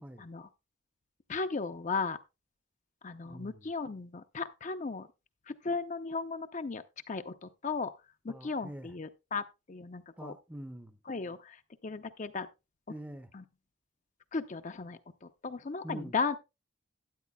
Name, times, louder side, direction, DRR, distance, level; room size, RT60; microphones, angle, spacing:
voice 1, 0.2-0.5 1.3-2.2 3.0-5.1 5.5-7.9 8.2-10.3 11.1-12.5 13.3-13.4 14.3-16.4, left 4 dB, 40° left, 0.5 m, -36 dB
voice 2, 3.2-3.7 8.3-8.9 10.2-11.0 12.9-13.3 15.8-16.1, right 1 dB, 10° right, 0.6 m, -44 dB
12.0 x 9.4 x 2.2 m
head